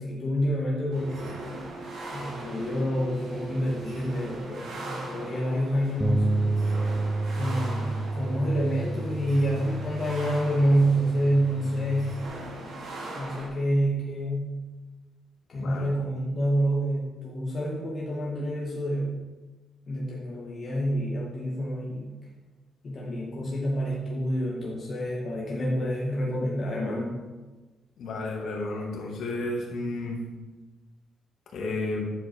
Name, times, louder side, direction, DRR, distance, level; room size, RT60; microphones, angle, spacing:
voice 1, 0.0-1.4 2.1-6.3 7.4-12.2 12.6-12.7 13.2-14.6 15.5-19.2 19.9-22.1 22.8-27.1, equal, 40° left, -5 dB, 2.2 m, -28 dB
sound 1, 0.9-13.5, right 2 dB, 80° right, 3.0 m, -40 dB
Bass guitar, 6.0-12.3, right 2 dB, 10° right, 0.8 m, -30 dB
voice 2, 15.5-15.9 28.0-30.2 31.5-32.1, left 2 dB, 70° left, -2 dB, 2.8 m, -32 dB
10.5 x 7.2 x 4.8 m, 1.2 s
cardioid pair, 90°, 0 cm